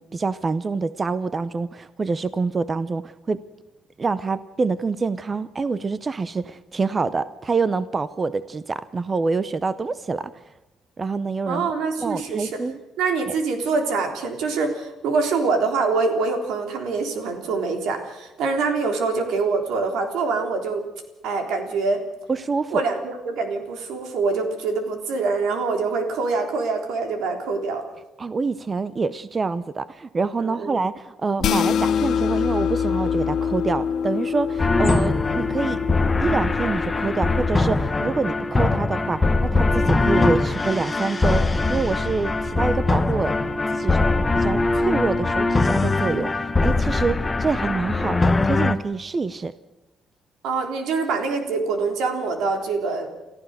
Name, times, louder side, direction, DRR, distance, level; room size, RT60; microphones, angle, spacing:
voice 1, 0.0-3.4 4.0-10.3 11.0-11.7 12.0-12.8 13.3-13.4 22.3-22.8 28.2-35.8 36.2-43.3 43.7-44.0 44.3-49.5, right 4 dB, 25° right, 15 dB, 0.6 m, -26 dB
voice 2, 11.5-12.5 13.0-20.8 21.2-22.0 22.7-27.8 30.4-30.8 50.4-53.1, right 4 dB, 85° right, 5 dB, 3.6 m, -25 dB
sound 1, 31.4-37.9, left 7 dB, 60° left, 0.6 m, -25 dB
sound 2, 34.6-48.7, left 3 dB, 15° left, 1.0 m, -22 dB
29.5 x 14.5 x 6.7 m, 1.0 s
cardioid pair, 150°, 0 cm